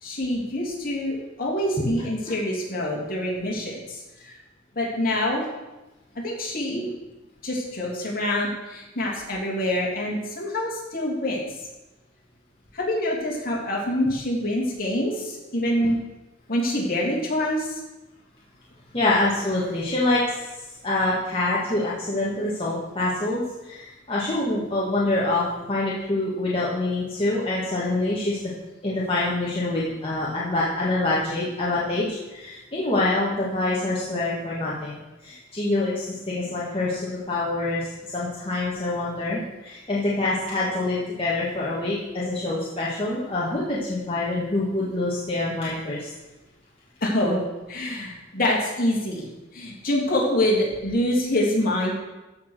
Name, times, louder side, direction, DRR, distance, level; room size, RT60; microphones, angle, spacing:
voice 1, 0.0-4.3 4.7-5.4 6.1-6.9 7.4-11.5 12.7-16.0 16.5-17.8 47.0-47.4 47.7-49.2 49.5-51.9, left 1 dB, 45° left, -3 dB, 3.1 m, -26 dB
voice 2, 18.9-20.4 20.8-28.4 28.8-46.1, left 2 dB, 30° left, -7 dB, 1.7 m, -26 dB
14.0 x 4.8 x 6.5 m, 1.1 s
head